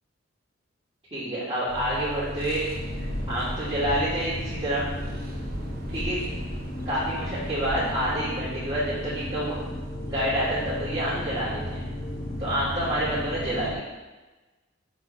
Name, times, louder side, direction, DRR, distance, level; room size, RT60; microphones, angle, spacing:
voice 1, 1.1-2.7 3.3-4.8 5.9-6.2 6.8-9.6 10.1-11.8 12.4-13.8, right 1 dB, 25° right, -14 dB, 2.8 m, -28 dB
Bus, 1.7-13.7, equal, 70° right, 1.6 m, -37 dB
sound 1, 2.4-8.1, equal, 50° right, 0.9 m, -38 dB
sound 2, 2.7-13.8, left 2 dB, 25° left, 0.5 m, -38 dB
7.0 x 4.2 x 6.5 m, 1.2 s
head